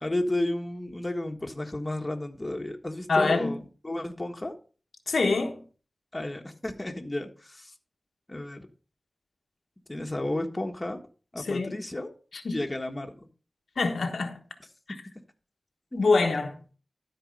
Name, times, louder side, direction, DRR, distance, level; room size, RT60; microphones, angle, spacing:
voice 1, 0.0-4.5 6.1-7.7 8.3-8.7 9.9-11.0 11.3-12.1 12.5-13.3 15.9-16.0, left 1 dB, 25° left, 1.6 m, -32 dB
voice 2, 3.1-3.5 5.1-5.6 11.5-11.8 12.4-12.6 13.8-14.4 16.0-16.6, left 3 dB, 85° left, 1.2 m, -25 dB
12.5 x 4.7 x 5.4 m
wide cardioid pair, 65°, 0 cm